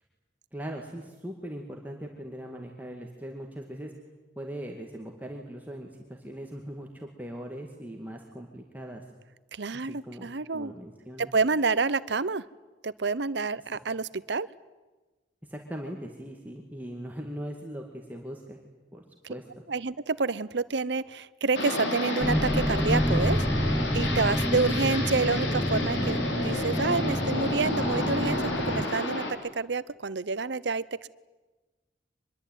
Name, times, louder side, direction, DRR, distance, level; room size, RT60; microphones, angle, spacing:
voice 1, 0.5-3.9 4.4-9.0 9.7-11.3 15.4-18.6 18.9-19.4, equal, 10° right, 1 dB, 2.1 m, -40 dB
voice 2, 9.5-10.7 11.2-12.4 12.8-14.5 19.2-19.3 19.7-23.4 23.9-31.1, right 4 dB, 65° right, 18 dB, 0.8 m, -28 dB
sound 1, 21.5-29.3, left 2 dB, 75° left, 4.5 m, -31 dB
sound 2, 22.2-28.8, equal, 5° left, 0.9 m, -28 dB
24.5 x 22.0 x 9.3 m, 1.2 s
head